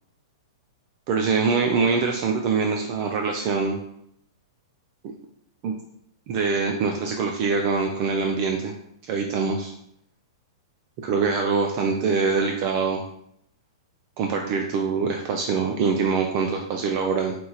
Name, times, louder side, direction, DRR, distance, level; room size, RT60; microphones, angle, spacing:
voice 1, 1.1-3.8 5.6-5.7 6.3-8.7 9.1-9.7 11.0-13.0 14.2-17.4, right 5 dB, 40° right, 3 dB, 0.4 m, -24 dB
4.4 x 2.4 x 4.0 m, 0.73 s
hypercardioid pair, 150°, 2 cm